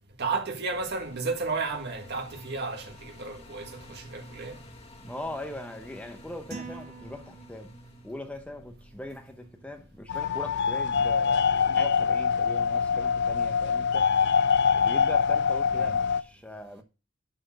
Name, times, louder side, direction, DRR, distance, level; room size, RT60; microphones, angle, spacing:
voice 1, 0.2-4.6 15.7-15.9, right 4 dB, 55° right, 1.7 m, -33 dB
sound 1, 0.7-16.3, equal, 30° left, 1.4 m, -52 dB
voice 2, 5.0-7.7 8.0-14.1 14.7-16.8, left 1 dB, 5° left, 0.8 m, -40 dB
sound 2, 6.5-8.0, right 3 dB, 35° right, 3.2 m, -43 dB
sound 3, 10.1-16.2, left 6 dB, 55° left, 0.4 m, -24 dB
11.0 x 4.4 x 6.2 m
head